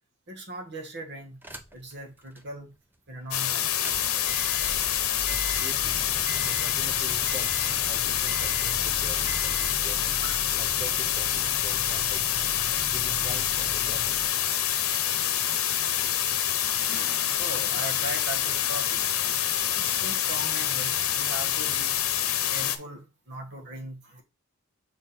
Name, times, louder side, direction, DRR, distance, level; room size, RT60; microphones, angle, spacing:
voice 1, 0.3-1.4 1.7-2.8 3.1-3.7 8.0-8.2 10.2-10.8 14.8-14.9 15.7-19.1 19.8-22.0 22.5-24.2, right 1 dB, 55° right, 1.7 m, -40 dB
sound 1, 1.4-1.9 2.4-2.5 3.6-14.3, right 1 dB, 10° right, 0.7 m, -40 dB
sound 2, 3.3-22.8, left 10 dB, 85° left, 0.8 m, -26 dB
voice 2, 5.3-10.1 10.5-12.2 12.9-14.2, right 1 dB, 30° right, 1.0 m, -44 dB
6.0 x 3.8 x 4.4 m
head